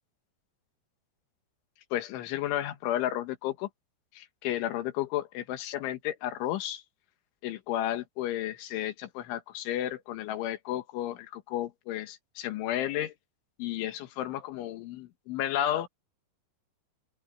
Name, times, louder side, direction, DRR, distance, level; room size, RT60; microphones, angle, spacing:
voice 1, 1.9-3.7 4.2-6.8 7.4-13.1 13.6-15.9, left 12 dB, 85° left, 4.0 m, -32 dB
open air
omnidirectional pair, 5.4 m